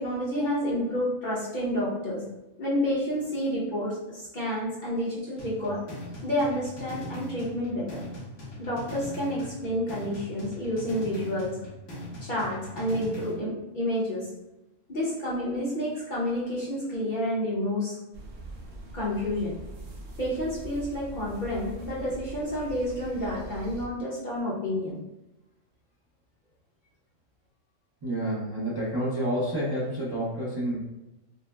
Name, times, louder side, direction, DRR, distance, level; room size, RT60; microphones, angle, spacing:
voice 1, 0.0-2.2 2.6-5.8 6.2-8.0 8.6-11.6 12.2-14.3 14.9-18.0 18.9-19.6 20.2-25.0, left 1 dB, 45° left, -7 dB, 0.9 m, -29 dB
sound 1, 5.4-13.4, equal, 75° left, 1.5 m, -40 dB
sound 2, 18.1-23.9, right 2 dB, 80° right, 1.0 m, -42 dB
voice 2, 28.0-30.7, right 1 dB, 25° right, -8 dB, 0.6 m, -29 dB
5.1 x 2.1 x 2.2 m, 0.98 s
omnidirectional pair, 1.3 m